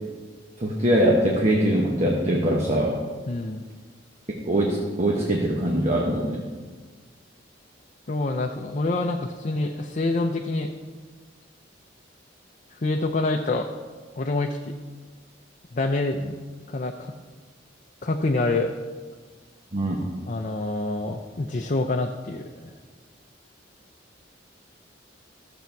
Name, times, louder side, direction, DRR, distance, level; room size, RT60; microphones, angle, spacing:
voice 1, 0.6-3.0 4.5-6.4 19.7-20.0, right 1 dB, 35° right, -1 dB, 1.1 m, -22 dB
voice 2, 3.3-3.6 8.1-10.7 12.7-13.7 14.2-14.7 15.7-16.4 16.7-17.1 18.0-18.7 20.3-22.7, left 2 dB, 40° left, 3 dB, 0.6 m, -26 dB
13.0 x 7.1 x 4.6 m, 1.5 s
head